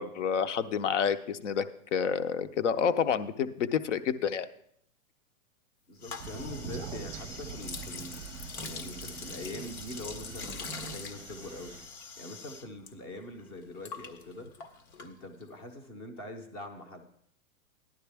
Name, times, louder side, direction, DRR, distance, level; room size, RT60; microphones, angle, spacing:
voice 1, 0.0-1.6 1.9-4.5, left 7 dB, 55° left, 12 dB, 0.9 m, -29 dB
voice 2, 5.9-8.3 8.6-11.7 12.2-14.5 15.0-17.1, left 1 dB, 15° left, 6 dB, 0.7 m, -43 dB
sound 1, 6.0-12.9 13.2-15.6, left 4 dB, 90° left, 1.8 m, -43 dB
Crow, 6.2-11.8, right 7 dB, 25° right, 0.7 m, -44 dB
15.0 x 11.5 x 3.5 m, 0.69 s
hypercardioid pair, 175°, 42 cm